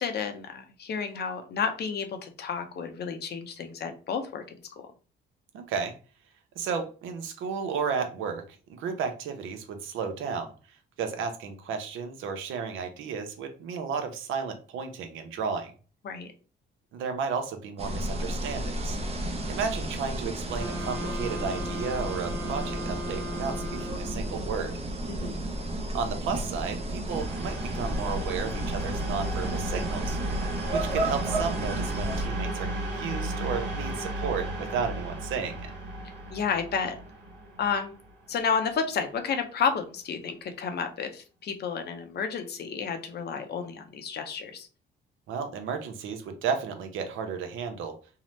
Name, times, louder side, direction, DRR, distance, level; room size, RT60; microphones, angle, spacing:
voice 1, 0.0-4.4 4.8-4.9 16.0-16.3 25.1-25.4 36.3-37.0 37.6-37.9 38.3-44.7, left 6 dB, 55° left, 7 dB, 0.6 m, -31 dB
voice 2, 5.5-5.9 6.6-8.4 8.8-10.5 11.0-15.7 16.9-19.0 19.5-24.7 25.9-30.2 30.6-35.7 45.3-48.0, right 6 dB, 85° right, 6 dB, 0.6 m, -33 dB
sound 1, 17.8-32.3, right 1 dB, 30° right, 0.6 m, -33 dB
sound 2, 20.6-24.4, left 1 dB, 20° left, 0.7 m, -38 dB
sound 3, 27.1-38.7, right 1 dB, 65° right, 1.1 m, -34 dB
2.7 x 2.1 x 3.1 m, 0.37 s
cardioid pair, 90°, 20 cm